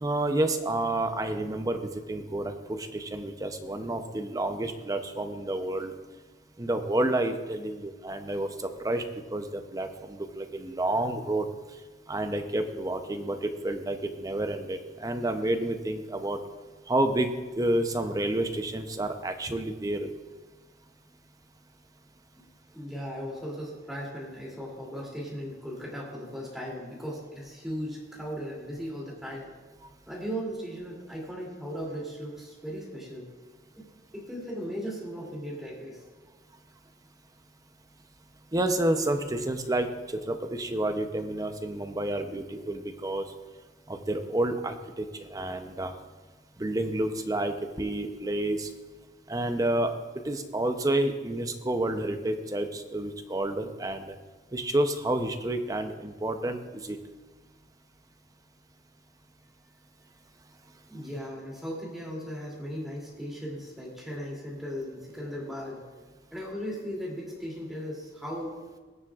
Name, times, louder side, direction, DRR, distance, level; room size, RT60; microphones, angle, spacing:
voice 1, 0.0-5.9 6.6-8.5 8.8-9.0 9.3-11.5 12.1-16.4 16.9-20.1 38.5-43.3 43.9-46.0 46.6-48.7 49.3-49.9 50.2-54.1 54.5-57.0, right 1 dB, 20° right, 7 dB, 0.6 m, -29 dB
voice 2, 22.7-29.5 30.1-33.3 33.8-33.9 34.1-36.0 60.9-65.8 66.3-68.5, equal, ahead, -4 dB, 2.7 m, -37 dB
21.5 x 7.2 x 2.4 m, 1.3 s
head